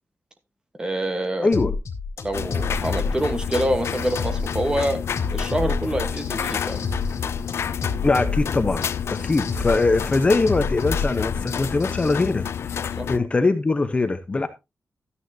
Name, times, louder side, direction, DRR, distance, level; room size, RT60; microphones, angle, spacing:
voice 1, 0.8-1.5 2.2-5.0 5.3-6.8 13.0-13.1, right 1 dB, 15° right, 1.3 m, -26 dB
voice 2, 1.4-1.7 5.6-5.8 8.0-14.5, left 3 dB, 25° left, 0.9 m, -22 dB
sound 1, 1.5-12.1, left 4 dB, 85° left, 2.1 m, -30 dB
sound 2, 2.3-13.2, left 8 dB, 60° left, 0.5 m, -29 dB
13.0 x 9.8 x 2.8 m
wide cardioid pair, 170°, 5 cm